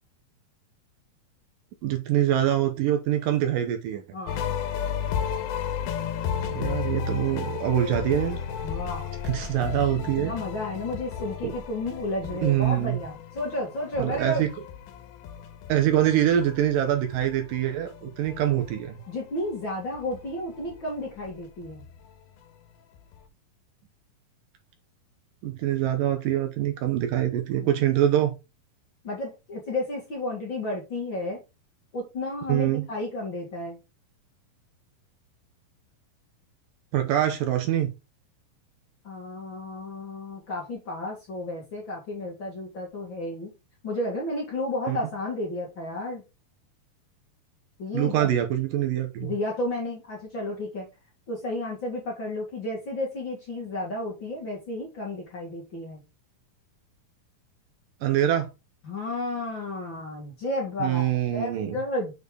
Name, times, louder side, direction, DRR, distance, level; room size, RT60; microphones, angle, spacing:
voice 1, 1.8-4.0 6.4-8.4 9.2-10.3 11.4-11.5 12.4-13.0 14.0-14.5 15.7-19.0 25.4-28.3 32.5-32.9 36.9-37.9 44.9-45.0 47.9-49.3 58.0-58.5 60.8-61.8, right 11 dB, 70° right, 2.4 m, -24 dB
voice 2, 4.1-4.5 8.6-9.1 10.2-14.4 19.1-21.8 27.6-27.7 29.0-31.4 31.9-33.8 39.0-43.5 43.8-46.2 47.8-48.3 49.2-50.9 51.3-56.0 58.8-62.1, left 1 dB, 40° left, 2.1 m, -32 dB
sound 1, 4.3-19.6 19.9-22.6 22.9-23.2, left 8 dB, 80° left, 2.8 m, -34 dB
6.9 x 4.3 x 5.0 m
omnidirectional pair, 4.4 m